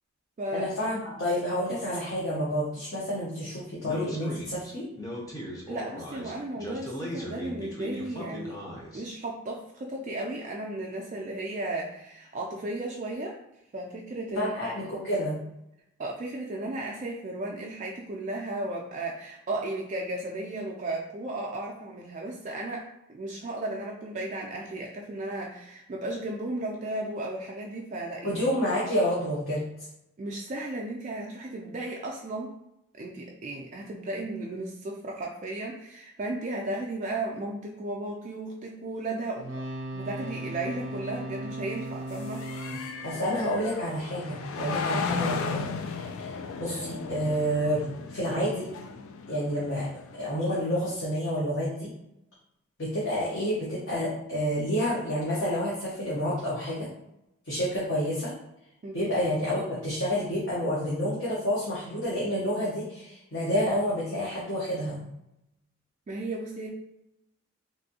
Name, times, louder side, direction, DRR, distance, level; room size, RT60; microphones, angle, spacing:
voice 1, 0.5-4.9 14.3-15.4 28.2-29.7 43.0-47.8 48.1-48.7 49.3-49.9 50.2-51.9 52.8-56.9 57.5-58.3 58.9-65.0, equal, 65° left, -7 dB, 0.9 m, -29 dB
Speech, 3.8-9.0, equal, 15° left, 0.5 m, -38 dB
voice 2, 5.7-8.6 8.9-13.4 13.7-14.7 16.0-28.4 30.2-32.5 33.0-39.5 39.9-43.3 44.8-45.0 58.8-59.0 66.1-66.7, right 2 dB, 35° right, -1 dB, 0.3 m, -35 dB
sound 1, 39.4-44.4 47.2-47.3, right 1 dB, 60° right, 0.7 m, -38 dB
sound 2, 40.2-50.9, left 5 dB, 85° left, 0.3 m, -36 dB
3.2 x 2.6 x 2.7 m, 0.84 s
head